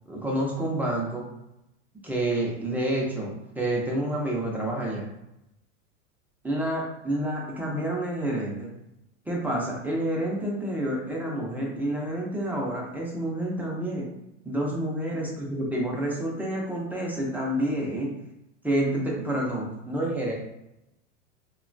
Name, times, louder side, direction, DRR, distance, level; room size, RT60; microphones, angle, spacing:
voice 1, 0.1-1.3 2.0-5.1 6.4-8.7 9.3-14.1 14.4-18.1 18.6-20.3, right 1 dB, 5° right, -3 dB, 0.5 m, -28 dB
2.8 x 2.2 x 2.5 m, 0.87 s
supercardioid pair, 115°, 37 cm